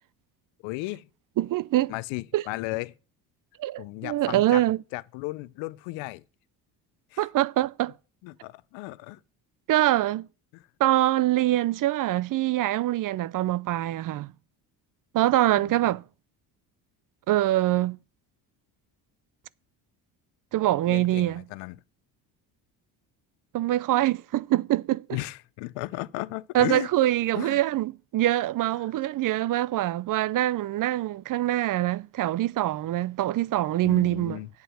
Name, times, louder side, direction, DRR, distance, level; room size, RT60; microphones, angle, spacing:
voice 1, 0.6-1.1 1.9-2.9 3.8-4.6 4.9-6.2 7.1-7.2 8.2-9.2 10.5-10.6 15.6-15.7 20.9-21.8 25.1-26.9 27.3-27.6 33.8-34.5, left 21 dB, 80° left, 0.6 m, -35 dB
voice 2, 1.4-1.9 2.3-2.4 3.6-4.8 7.2-7.9 9.7-10.3 10.8-14.3 15.1-16.0 17.3-18.0 20.5-21.4 23.5-25.2 26.5-34.4, right 14 dB, 50° right, 0.5 m, -24 dB
8.2 x 8.1 x 6.2 m
supercardioid pair, 75°, 44 cm